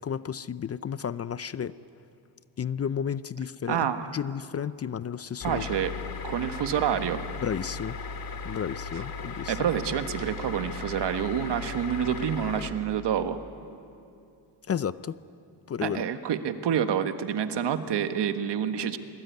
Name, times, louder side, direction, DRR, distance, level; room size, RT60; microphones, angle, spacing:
voice 1, 0.0-1.7 2.6-5.6 7.4-8.0 8.4-9.6 14.7-15.2 15.7-16.0, left 8 dB, 35° left, 16 dB, 0.5 m, -32 dB
voice 2, 3.7-4.1 5.4-5.9 6.2-7.2 8.9-9.0 9.5-13.4 15.8-19.0, right 9 dB, 65° right, 9 dB, 1.6 m, -28 dB
sound 1, 5.4-12.7, left 4 dB, 50° left, 2.6 m, -37 dB
27.5 x 20.5 x 9.4 m, 2.6 s
cardioid pair, 90°, 44 cm